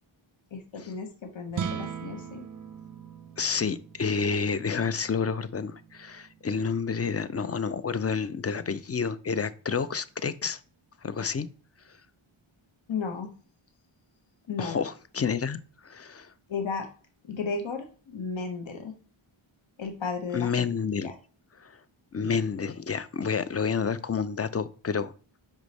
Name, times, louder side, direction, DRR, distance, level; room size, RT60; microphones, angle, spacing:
voice 1, 0.5-2.5 12.9-13.3 14.5-14.8 16.5-16.9 17.2-18.9 19.8-20.5 21.0-21.2 22.2-22.3, left 5 dB, 65° left, 5 dB, 1.0 m, -34 dB
sound 1, 1.5-7.9, right 7 dB, 40° right, 0.5 m, -40 dB
voice 2, 3.4-10.6 11.0-11.5 14.6-16.3 20.3-21.1 21.6-21.8 22.1-25.1, left 6 dB, 30° left, 14 dB, 0.4 m, -29 dB
5.2 x 4.8 x 4.0 m, 0.39 s
wide cardioid pair, 85°, 50 cm